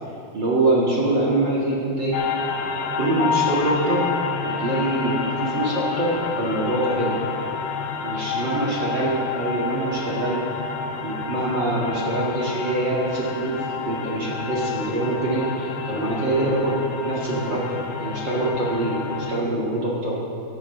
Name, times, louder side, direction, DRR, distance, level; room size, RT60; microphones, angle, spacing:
voice 1, 0.3-2.2 2.9-4.1 4.4-7.2 8.0-10.4 11.0-13.5 13.8-20.2, right 2 dB, 45° right, -6 dB, 1.6 m, -24 dB
sound 1, 2.1-19.4, left 5 dB, 80° left, 2.7 m, -29 dB
16.5 x 12.5 x 3.2 m, 2.6 s
omnidirectional pair, 4.6 m